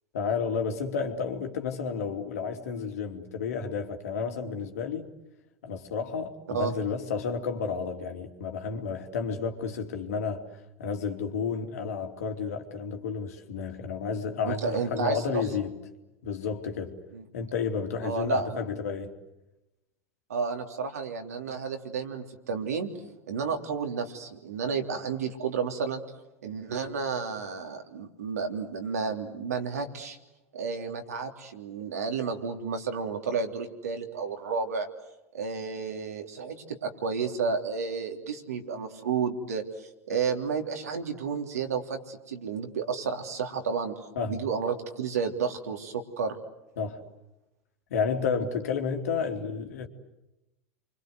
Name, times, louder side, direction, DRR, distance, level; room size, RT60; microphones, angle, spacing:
voice 1, 0.1-5.1 5.6-10.4 10.8-15.7 16.2-17.0 17.3-19.1 44.2-44.4 46.8-47.0 47.9-49.9, left 5 dB, 80° left, 2.9 m, -31 dB
voice 2, 14.4-15.2 17.1-17.2 18.0-18.6 20.3-22.9 23.3-26.0 26.4-30.2 30.5-34.9 35.3-43.9 44.3-46.3, right 5 dB, 90° right, 3.3 m, -31 dB
29.5 x 24.5 x 8.0 m
hypercardioid pair, 90°, 8 cm